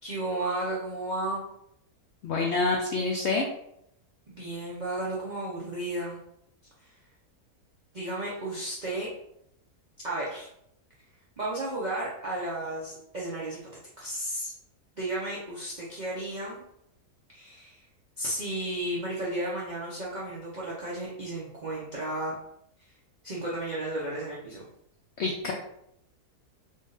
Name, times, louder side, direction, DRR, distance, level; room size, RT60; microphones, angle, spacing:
voice 1, 0.0-1.4 4.3-6.2 6.8-6.9 7.9-9.1 10.0-10.5 11.4-13.6 14.0-14.5 15.0-16.6 17.3-17.8 18.2-22.4 23.2-24.7, right 1 dB, 40° right, -6 dB, 0.7 m, -33 dB
voice 2, 2.2-3.5 25.2-25.5, left 3 dB, 65° left, 0 dB, 0.7 m, -27 dB
3.8 x 2.5 x 3.9 m, 0.76 s
omnidirectional pair, 1.6 m